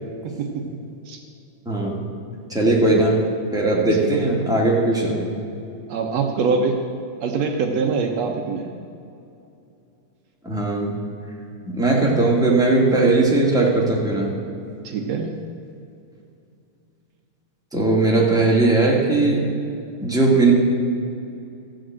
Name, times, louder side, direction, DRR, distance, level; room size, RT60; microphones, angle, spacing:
voice 1, 0.2-0.6 1.1-1.2 4.0-4.3 5.9-6.8 7.2-8.7 14.8-15.4, right 5 dB, 65° right, 3 dB, 2.0 m, -24 dB
voice 2, 1.7-2.0 2.5-3.2 3.5-5.3 10.4-11.0 11.7-14.3 17.7-19.5 20.0-20.5, right 2 dB, ahead, -3 dB, 1.9 m, -18 dB
14.5 x 7.8 x 7.5 m, 2.6 s
omnidirectional pair, 3.5 m